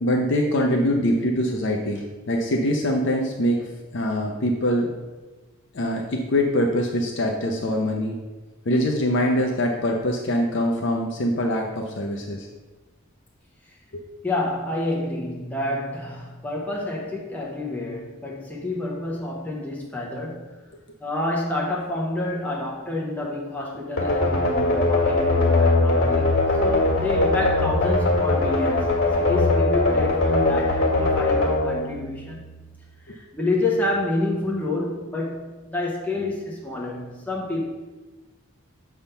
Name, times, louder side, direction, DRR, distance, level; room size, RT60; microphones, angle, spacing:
voice 1, 0.0-3.7 3.9-4.9 5.7-8.2 8.7-12.5 13.9-14.0 33.1-33.2, equal, 60° left, 1 dB, 0.6 m, -23 dB
voice 2, 14.2-20.5 21.0-26.3 26.6-32.4 33.0-37.7, left 2 dB, 10° left, -4 dB, 0.8 m, -28 dB
sound 1, 24.0-32.7, left 2 dB, 90° left, 1.6 m, -21 dB
7.1 x 3.6 x 5.6 m, 1.2 s
head